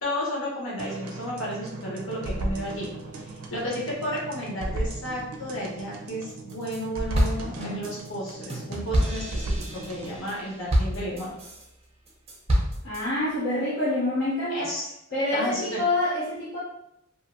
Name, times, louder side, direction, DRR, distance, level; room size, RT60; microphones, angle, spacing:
voice 1, 0.0-11.3 14.5-14.9 15.3-15.8, equal, 70° left, -4 dB, 1.1 m, -33 dB
sound 1, 0.8-10.2, right 2 dB, 90° right, 0.4 m, -35 dB
sound 2, 6.3-6.8 7.1-11.7 12.1-13.0, equal, 30° right, 0.5 m, -27 dB
voice 2, 12.8-14.7 15.1-16.6, left 2 dB, 55° left, -8 dB, 0.6 m, -26 dB
2.6 x 2.4 x 2.5 m, 0.79 s
head